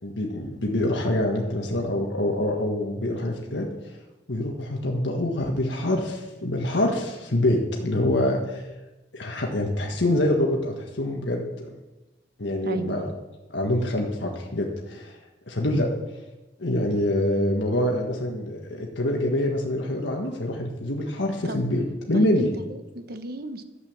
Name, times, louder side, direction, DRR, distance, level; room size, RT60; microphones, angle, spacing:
voice 1, 0.0-4.0 4.3-8.6 9.1-11.7 12.4-13.1 13.5-15.2 15.5-15.9 16.6-22.5, left 1 dB, 80° left, 0 dB, 1.6 m, -25 dB
voice 2, 12.6-13.0 21.4-21.6 22.1-23.6, right 2 dB, 55° right, 9 dB, 1.2 m, -34 dB
12.5 x 8.4 x 7.4 m, 1.1 s
head